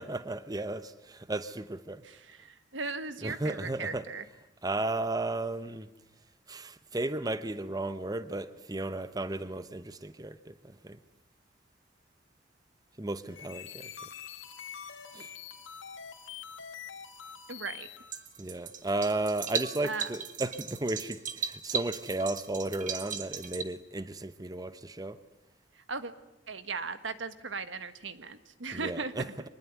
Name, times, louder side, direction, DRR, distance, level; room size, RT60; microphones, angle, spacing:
voice 1, 0.0-2.0 3.2-4.0 4.6-5.9 6.5-11.0 13.0-13.9 15.1-15.3 18.4-25.2 28.7-29.5, right 2 dB, 20° right, 0.8 m, -34 dB
voice 2, 2.0-4.2 17.5-17.9 19.8-20.1 25.7-26.1 26.5-29.1, right 4 dB, 75° right, 1.6 m, -37 dB
sound 1, 13.2-18.3, left 8 dB, 90° left, 2.2 m, -45 dB
sound 2, 18.1-23.6, right 6 dB, 45° right, 1.7 m, -37 dB
25.0 x 20.5 x 9.5 m
head